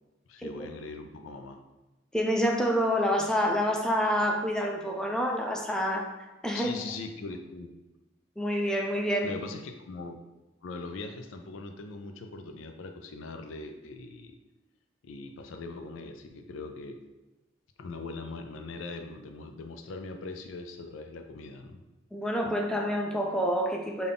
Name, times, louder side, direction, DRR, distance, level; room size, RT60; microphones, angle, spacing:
voice 1, 0.3-1.6 6.5-7.7 9.2-10.2 10.6-14.4 15.0-17.0 17.8-21.8, left 3 dB, 85° left, 6 dB, 0.4 m, -41 dB
voice 2, 2.1-6.1 6.4-6.7 8.4-9.3 22.1-24.1, equal, 5° left, 1 dB, 0.4 m, -27 dB
3.8 x 2.3 x 3.5 m, 1.1 s
head